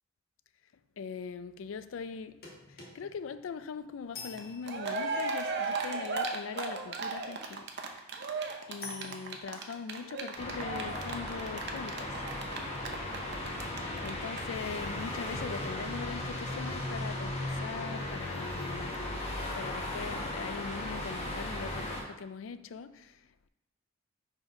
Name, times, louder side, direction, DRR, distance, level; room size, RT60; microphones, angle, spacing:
voice 1, 1.0-7.7 8.7-12.2 14.0-19.3 19.5-23.5, left 5 dB, 80° left, 0.4 m, -41 dB
sound 1, 2.4-5.3 8.8-9.4, left 4 dB, 55° left, 1.3 m, -47 dB
Cheering, 4.4-4.5 4.6-13.8 14.0-14.1 14.4-14.5, right 4 dB, 60° right, 0.7 m, -35 dB
sound 2, 10.4-22.0, left 1 dB, 35° left, 1.1 m, -36 dB
4.8 x 4.0 x 5.2 m
head